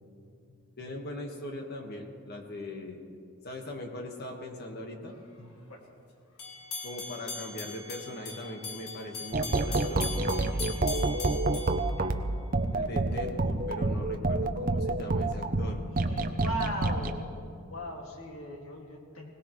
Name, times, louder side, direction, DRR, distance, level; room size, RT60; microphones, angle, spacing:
voice 1, 0.8-3.0 3.4-5.5 6.8-10.0 12.7-15.8, left 1 dB, 45° left, 2 dB, 1.6 m, -40 dB
sound 1, 6.4-12.6, left 4 dB, 90° left, 1.6 m, -40 dB
sound 2, 9.3-17.1, right 2 dB, 40° right, 0.6 m, -28 dB
voice 2, 15.9-17.3 17.7-19.3, equal, 65° left, 0 dB, 2.3 m, -38 dB
21.0 x 18.5 x 3.2 m, 2.4 s
head